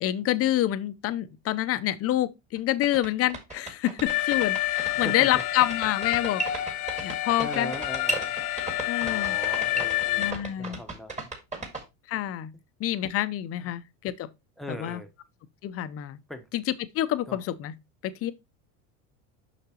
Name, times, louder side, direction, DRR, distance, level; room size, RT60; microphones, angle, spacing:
voice 1, 0.0-6.7 7.0-7.7 8.8-9.4 10.2-10.8 12.1-12.5 12.8-14.3 14.7-15.0 15.6-16.2 16.5-16.6 16.9-17.7 18.0-18.3, left 13 dB, 40° left, 0.6 m, -27 dB
sound 1, 2.6-2.7 2.8-11.8, right 2 dB, 20° right, 1.7 m, -34 dB
Alarm, 4.1-10.3, left 14 dB, 70° left, 1.0 m, -29 dB
voice 2, 5.0-5.3 7.4-8.3 9.0-11.6 13.6-13.7 14.6-15.1 16.3-16.5 17.3-17.4, left 1 dB, ahead, 0.9 m, -40 dB
6.8 x 5.8 x 2.8 m
supercardioid pair, 120°, 38 cm